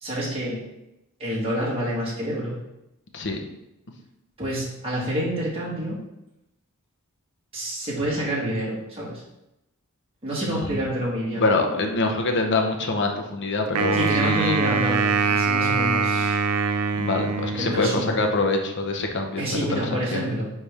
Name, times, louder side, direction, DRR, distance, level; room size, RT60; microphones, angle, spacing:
voice 1, 0.0-0.6 1.2-2.6 4.4-6.0 7.5-9.2 10.2-11.5 13.9-16.4 17.5-18.2 19.4-20.5, equal, 25° right, -6 dB, 1.7 m, -28 dB
voice 2, 10.4-10.9 11.4-14.6 16.9-20.2, left 2 dB, 55° left, 3 dB, 0.9 m, -25 dB
Wind instrument woodwind instrument, 13.7-18.0, right 4 dB, 85° right, 0.5 m, -23 dB
9.4 x 3.5 x 3.5 m, 0.90 s
head